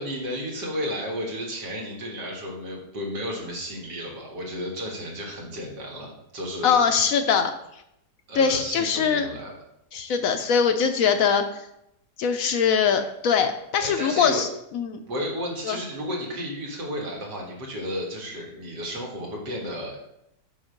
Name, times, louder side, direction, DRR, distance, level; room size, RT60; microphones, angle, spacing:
voice 1, 0.0-6.8 8.3-9.5 12.9-13.0 13.8-14.4 15.1-20.0, equal, 85° right, -1 dB, 2.3 m, -33 dB
voice 2, 6.6-7.5 8.3-9.3 9.9-11.7 12.2-14.5 14.7-15.0 15.6-15.8, left 6 dB, 65° left, 7 dB, 0.9 m, -22 dB
6.2 x 4.8 x 5.1 m, 0.80 s
omnidirectional pair, 1.7 m